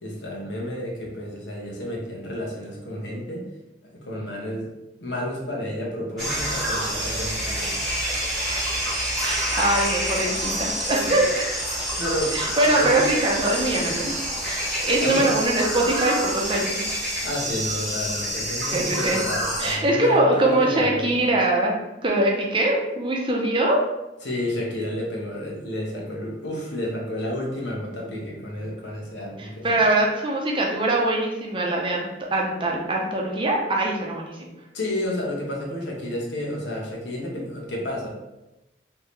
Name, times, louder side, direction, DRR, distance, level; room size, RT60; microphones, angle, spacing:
voice 1, 0.0-3.5 3.9-4.7 5.0-7.8 11.0-11.3 12.0-12.9 13.8-14.2 15.0-15.3 17.2-21.3 24.2-29.8 34.7-38.1, left 1 dB, 80° left, -2 dB, 1.0 m, -31 dB
sound 1, 6.2-19.7, equal, ahead, 1.2 m, -27 dB
voice 2, 9.2-11.5 12.3-14.0 14.5-16.8 18.7-19.2 19.6-21.7 22.0-23.8 29.4-34.5, right 2 dB, 30° right, -1 dB, 0.6 m, -23 dB
3.4 x 2.7 x 3.1 m, 0.97 s
head